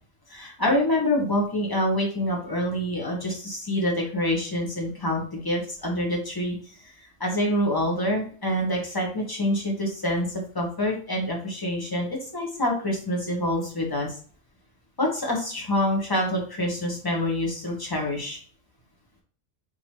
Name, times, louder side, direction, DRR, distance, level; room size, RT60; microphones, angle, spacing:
voice 1, 0.3-6.6 6.8-6.9 7.2-14.2 15.0-18.4, left 1 dB, 20° left, -1 dB, 1.1 m, -26 dB
4.1 x 2.9 x 3.1 m, 0.43 s
omnidirectional pair, 1.2 m